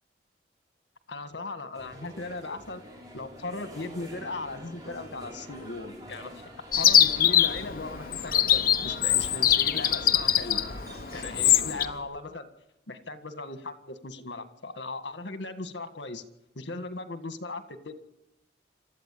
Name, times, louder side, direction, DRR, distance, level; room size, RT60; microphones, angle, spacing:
voice 1, 1.1-2.8 3.1-6.5 6.8-10.6 11.1-12.5 12.9-16.2 16.6-17.9, left 3 dB, 80° left, 8 dB, 1.8 m, -38 dB
sound 1, 1.7-12.0, equal, 20° right, 5.3 m, -46 dB
Chirp tweet, 6.7-11.9, left 10 dB, 50° left, 0.9 m, -23 dB
27.0 x 13.0 x 8.5 m, 0.91 s
head